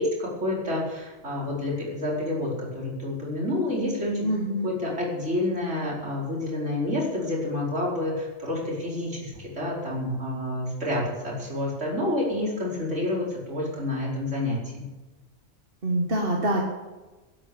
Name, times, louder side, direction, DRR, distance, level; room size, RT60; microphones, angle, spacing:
voice 1, 0.0-4.3 4.6-14.9, left 1 dB, 75° right, -4 dB, 5.1 m, -29 dB
voice 2, 4.2-4.7 15.8-16.6, right 1 dB, 50° right, 0 dB, 2.0 m, -25 dB
12.0 x 11.5 x 7.1 m, 1.2 s
omnidirectional pair, 1.3 m